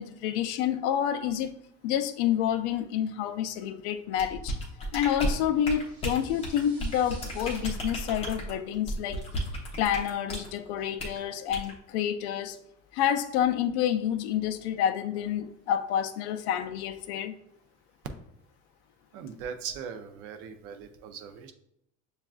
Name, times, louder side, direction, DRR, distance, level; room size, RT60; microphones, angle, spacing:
voice 1, 0.0-1.5 1.8-4.5 4.8-9.3 9.8-12.6 12.9-17.3, left 10 dB, 75° left, 7 dB, 0.5 m, -28 dB
sound 1, 4.2-10.5 11.0-11.2 11.5-11.7, equal, 20° left, 0.7 m, -34 dB
sound 2, 5.5-7.6, right 3 dB, 30° right, 1.5 m, -54 dB
voice 2, 19.1-21.5, right 7 dB, 50° right, 8 dB, 0.4 m, -40 dB
6.8 x 2.4 x 2.3 m, 0.77 s
cardioid pair, 180°, 34 cm